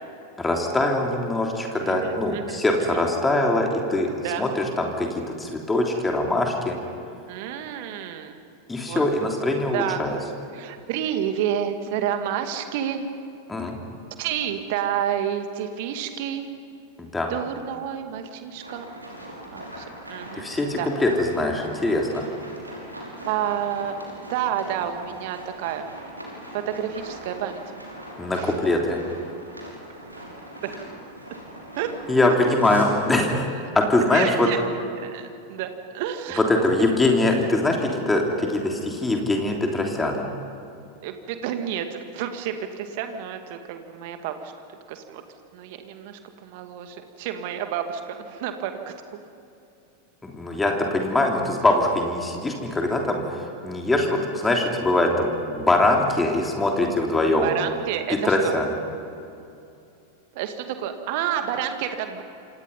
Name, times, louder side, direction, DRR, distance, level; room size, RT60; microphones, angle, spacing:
voice 1, 0.4-6.7 8.7-10.2 13.5-13.8 17.0-17.3 20.4-22.2 28.2-29.0 32.1-34.5 36.4-40.3 50.2-57.5 58.1-58.7, left 2 dB, 10° left, 1 dB, 3.3 m, -23 dB
voice 2, 1.7-3.0 4.2-4.5 7.3-8.4 8.8-9.0 9.7-10.2 10.5-13.3 14.2-16.5 17.3-18.8 19.4-20.5 20.8-20.9 23.2-23.9 24.3-25.9 26.5-27.6 28.3-28.6 30.6-30.7 31.8-31.9 34.1-34.6 35.0-35.7 35.9-36.4 36.8-37.0 41.0-44.5 44.9-45.2 45.5-48.9 57.4-58.5 60.3-62.2, right 9 dB, 50° right, 7 dB, 2.2 m, -30 dB
sound 1, 18.6-33.4, right 1 dB, 85° right, 5.5 m, -41 dB
28.5 x 26.5 x 5.6 m, 2.6 s
figure-of-eight pair, 90°, 0 cm